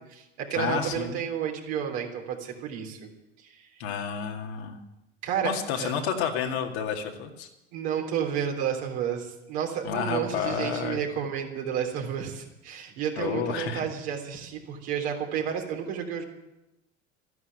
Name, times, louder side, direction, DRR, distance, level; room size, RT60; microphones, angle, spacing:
voice 1, 0.0-3.1 3.4-3.7 5.2-5.9 7.7-16.2, right 8 dB, 70° right, 1 dB, 3.6 m, -31 dB
voice 2, 0.5-1.2 3.8-4.8 5.4-7.5 9.8-11.0 13.2-13.8, left 6 dB, 75° left, 2 dB, 2.3 m, -30 dB
13.5 x 11.0 x 9.1 m, 0.94 s
hypercardioid pair, 75°, 33 cm